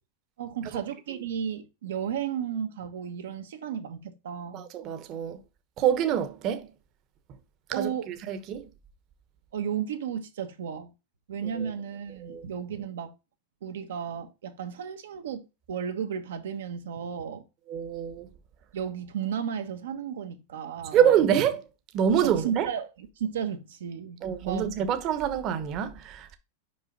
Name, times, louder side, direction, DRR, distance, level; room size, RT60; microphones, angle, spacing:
voice 1, 0.4-4.6 7.7-8.1 9.5-10.9 11.3-13.1 13.6-17.4 18.7-21.0 22.4-24.7, right 8 dB, 85° right, 1.3 m, -34 dB
voice 2, 4.5-5.4 5.8-6.7 7.8-8.7 11.4-11.7 12.2-12.4 17.7-18.3 20.9-21.6 21.9-22.7 24.2-26.4, right 9 dB, 40° right, 1.0 m, -26 dB
5.4 x 5.0 x 4.0 m
supercardioid pair, 135°, 0 cm